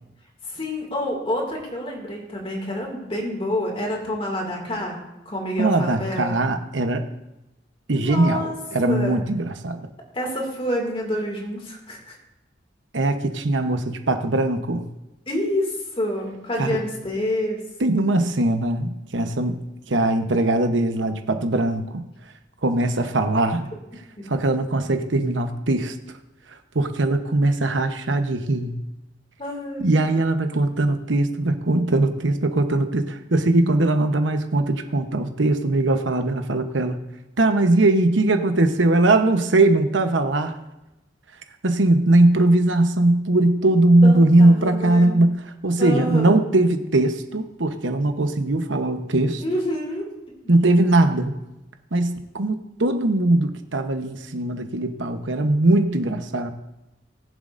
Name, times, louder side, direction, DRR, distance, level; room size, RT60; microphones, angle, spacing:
voice 1, 0.4-5.0 5.3-6.4 7.9-8.5 8.9-9.2 10.1-12.2 13.8-13.9 15.3-17.6 24.2-24.3 29.4-30.0 44.0-45.1 45.8-46.4 49.4-50.1, left 1 dB, 30° left, 0 dB, 2.4 m, -28 dB
voice 2, 5.6-7.1 7.9-9.9 12.9-14.9 16.6-16.8 17.8-22.0 22.6-23.7 24.3-26.0 26.7-28.8 29.8-37.0 37.4-40.6 41.6-49.4 50.5-51.3 51.9-56.5, right 2 dB, 80° right, 7 dB, 1.0 m, -20 dB
20.0 x 7.4 x 2.6 m, 0.96 s
head